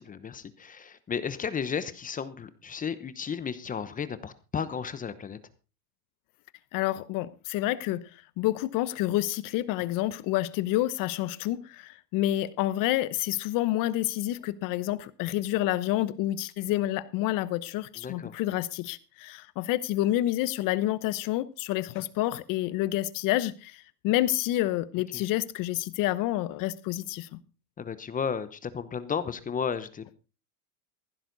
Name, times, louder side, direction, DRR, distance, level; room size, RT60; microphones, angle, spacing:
voice 1, 0.0-5.4 18.0-18.4 25.1-25.2 27.8-30.1, left 6 dB, 15° left, 0.9 m, -33 dB
voice 2, 6.7-8.0 8.4-27.4, left 15 dB, 45° left, 1.0 m, -28 dB
15.0 x 11.5 x 4.0 m
supercardioid pair, 125°, 47 cm